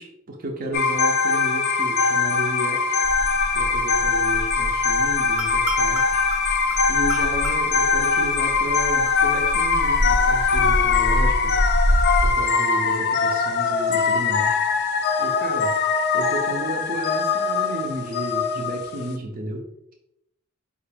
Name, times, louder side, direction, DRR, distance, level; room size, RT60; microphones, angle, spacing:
voice 1, 0.0-3.0 3.5-6.3 6.9-11.6 12.2-15.8 16.1-19.7, right 1 dB, 40° right, 2 dB, 0.5 m, -32 dB
sound 1, 0.7-19.1, left 5 dB, 45° left, 0.4 m, -22 dB
sound 2, 3.0-12.3, equal, 70° right, 0.8 m, -27 dB
4.8 x 2.5 x 3.4 m, 0.81 s
head